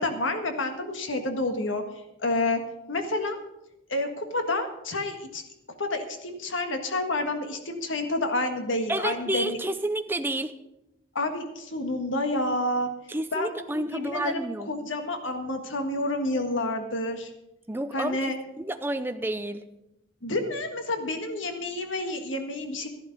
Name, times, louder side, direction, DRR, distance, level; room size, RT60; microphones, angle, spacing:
voice 1, 0.0-1.8 2.2-2.6 2.9-3.4 3.9-5.4 5.8-9.6 11.1-12.9 13.3-17.3 17.9-18.3 20.2-22.9, left 2 dB, 75° left, 6 dB, 1.7 m, -29 dB
voice 2, 8.9-10.5 13.1-14.7 17.7-19.6, right 1 dB, 10° right, 8 dB, 0.6 m, -30 dB
13.0 x 11.5 x 5.3 m, 0.89 s
head